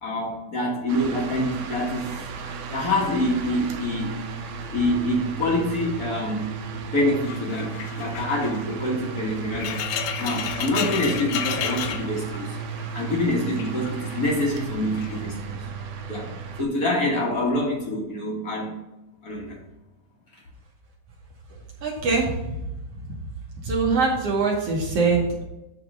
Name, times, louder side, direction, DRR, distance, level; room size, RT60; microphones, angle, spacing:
voice 1, 0.0-2.1 2.7-4.2 4.7-6.5 6.9-9.8 10.2-12.6 12.9-15.6 16.1-16.3 16.6-18.8 19.2-19.6 20.3-20.4, left 1 dB, 55° left, -3 dB, 1.0 m, -26 dB
sound 1, 0.9-16.7, right 5 dB, 80° right, 2.0 m, -34 dB
sound 2, 7.2-12.8 13.1-14.3 14.9-15.2, left 8 dB, 75° left, 1.9 m, -32 dB
voice 2, 21.5-23.2 23.6-25.5, right 4 dB, 60° right, -1 dB, 1.8 m, -24 dB
8.9 x 3.4 x 6.0 m, 0.94 s
omnidirectional pair, 3.8 m